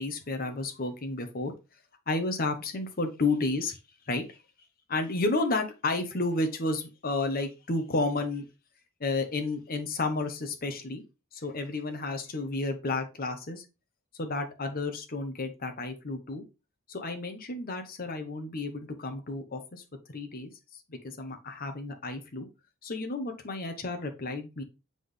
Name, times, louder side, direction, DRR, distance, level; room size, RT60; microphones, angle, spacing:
voice 1, 0.0-1.5 2.1-3.8 4.1-4.4 4.9-8.4 9.0-11.0 11.3-13.6 14.2-16.4 16.9-19.8 20.1-20.5 20.9-22.5 22.8-24.6, left 2 dB, 40° left, 5 dB, 1.0 m, -31 dB
7.6 x 3.9 x 3.3 m, 0.28 s
head